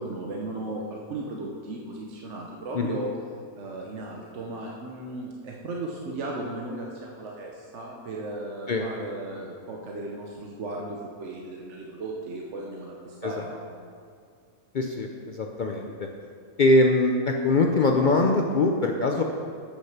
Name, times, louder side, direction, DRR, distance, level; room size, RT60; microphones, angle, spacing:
voice 1, 0.0-3.1 3.6-13.6, right 2 dB, 60° right, -1 dB, 1.1 m, -36 dB
voice 2, 14.7-16.1 16.6-19.2, left 2 dB, 70° left, 2 dB, 0.4 m, -22 dB
8.3 x 6.3 x 5.8 m, 2.3 s
omnidirectional pair, 1.5 m